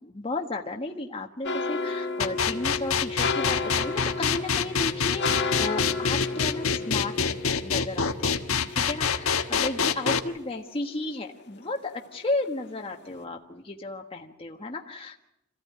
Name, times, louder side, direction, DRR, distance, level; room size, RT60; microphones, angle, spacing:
voice 1, 0.0-8.4 8.7-15.2, left 2 dB, 25° left, 2 dB, 1.4 m, -34 dB
sound 1, 1.5-10.7 11.1-12.1 12.4-12.8 13.1-13.2, left 3 dB, 55° left, 1.7 m, -33 dB
sound 2, 2.2-10.2, left 6 dB, 75° left, 1.4 m, -25 dB
27.0 x 16.0 x 9.6 m, 0.84 s
head